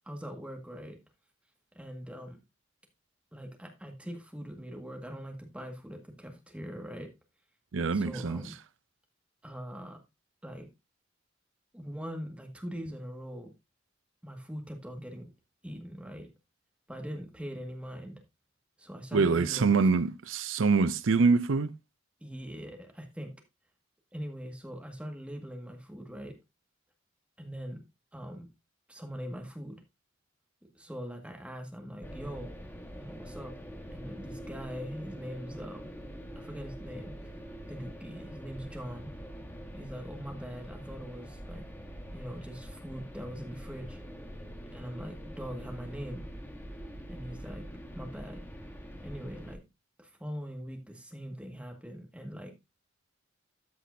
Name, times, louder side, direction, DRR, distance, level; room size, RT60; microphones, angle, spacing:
voice 1, 0.1-1.0 1.8-2.4 3.3-7.1 7.9-8.6 9.4-10.0 10.4-10.7 11.7-13.5 14.2-15.3 15.6-16.3 16.9-18.2 18.8-19.9 22.2-23.3 24.1-26.3 27.4-27.8 28.1-28.5 28.9-29.8 30.7-32.5 33.0-33.5 33.9-36.0 36.4-37.1 37.7-39.1 39.7-41.7 42.1-44.0 44.7-46.2 47.1-47.6 47.9-48.4 49.0-49.6 50.0-52.5, equal, 5° right, 1.8 m, -41 dB
voice 2, 7.7-8.4 19.1-21.7, right 4 dB, 85° right, 0.6 m, -25 dB
sound 1, 32.0-49.6, equal, 10° left, 1.3 m, -44 dB
13.5 x 5.9 x 2.7 m
head